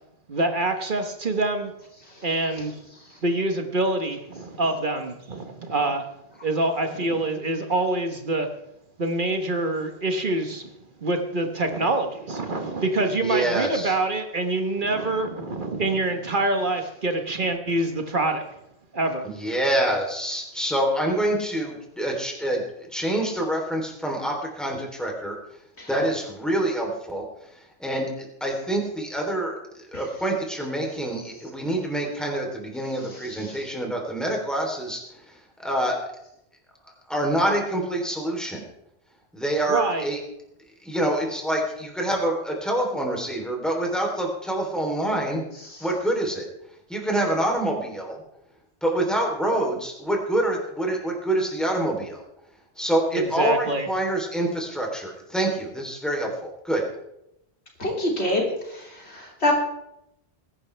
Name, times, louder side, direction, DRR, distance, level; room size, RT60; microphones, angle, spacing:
voice 1, 0.3-1.7 2.2-2.8 3.2-6.0 6.4-8.5 9.0-10.7 11.0-18.4 18.9-19.3 39.7-40.0 53.1-53.9, right 2 dB, 50° right, 6 dB, 1.3 m, -25 dB
voice 2, 13.2-13.9 19.2-25.4 25.9-36.0 36.8-38.6 39.3-40.2 40.8-45.4 45.8-48.2 48.8-52.2 52.7-56.8, right 1 dB, ahead, 0 dB, 3.2 m, -26 dB
voice 3, 57.8-58.4 59.1-59.5, left 1 dB, 80° left, -1 dB, 3.4 m, -23 dB
21.0 x 11.0 x 3.3 m, 0.82 s
omnidirectional pair, 1.1 m